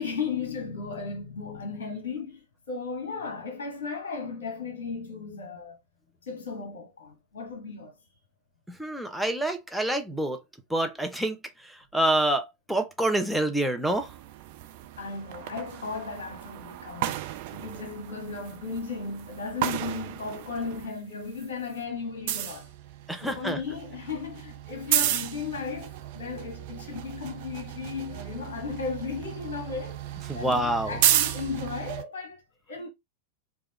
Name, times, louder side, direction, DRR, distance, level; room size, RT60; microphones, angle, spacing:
voice 1, 0.0-5.8 6.2-7.9 15.0-22.7 23.2-32.9, left 5 dB, 60° left, 1.2 m, -35 dB
voice 2, 8.8-10.4 10.7-14.1 23.1-23.6 30.3-31.0, right 1 dB, ahead, 0.7 m, -27 dB
sound 1, 13.9-20.9 21.2-32.0, right 12 dB, 50° right, 0.6 m, -33 dB
4.8 x 2.4 x 3.0 m
figure-of-eight pair, 90°, 0 cm